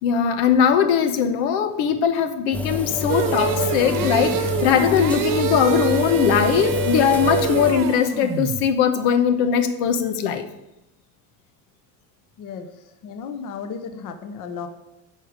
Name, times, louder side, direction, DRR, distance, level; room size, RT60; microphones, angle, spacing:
voice 1, 0.0-10.5, left 7 dB, 85° left, 8 dB, 1.2 m, -20 dB
sound 1, 2.5-7.7, left 3 dB, 5° left, 0.7 m, -28 dB
sound 2, 3.1-8.7, right 7 dB, 45° right, 1.0 m, -26 dB
voice 2, 12.4-14.7, left 6 dB, 45° left, 7 dB, 1.0 m, -34 dB
13.0 x 5.0 x 5.2 m, 0.92 s
cardioid pair, 150°, 46 cm